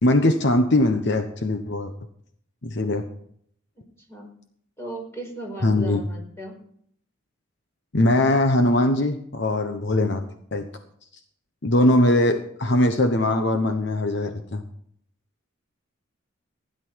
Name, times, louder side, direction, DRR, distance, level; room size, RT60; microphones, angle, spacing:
voice 1, 0.0-1.9 2.6-3.0 5.6-6.1 7.9-10.2 10.5-10.7 11.6-14.6, left 1 dB, 60° left, 6 dB, 1.1 m, -21 dB
voice 2, 4.8-6.5, right 1 dB, 15° left, 0 dB, 4.9 m, -36 dB
16.0 x 11.0 x 4.7 m, 0.66 s
head